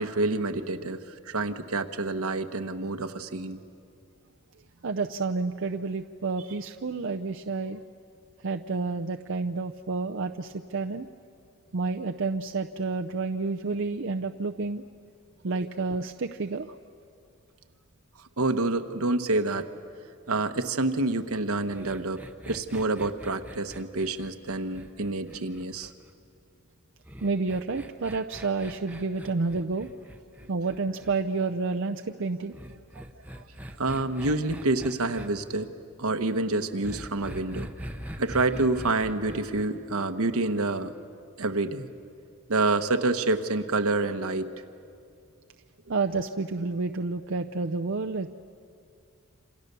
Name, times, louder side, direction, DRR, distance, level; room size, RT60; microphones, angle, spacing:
voice 1, 0.0-3.6 18.4-19.7 20.3-25.9 33.8-35.7 36.0-37.7 38.2-40.9 41.4-41.9 42.5-44.5, right 2 dB, 80° right, 8 dB, 1.2 m, -28 dB
voice 2, 4.8-7.8 8.4-11.1 11.7-14.8 15.4-16.8 27.2-29.9 30.5-33.0 33.3-33.5 45.9-48.3, right 3 dB, 60° right, 5 dB, 0.6 m, -30 dB
sound 1, 21.7-26.1 27.1-31.2 32.5-35.3 36.8-39.7, equal, 5° right, 0.9 m, -42 dB
28.0 x 27.5 x 6.8 m, 2.5 s
head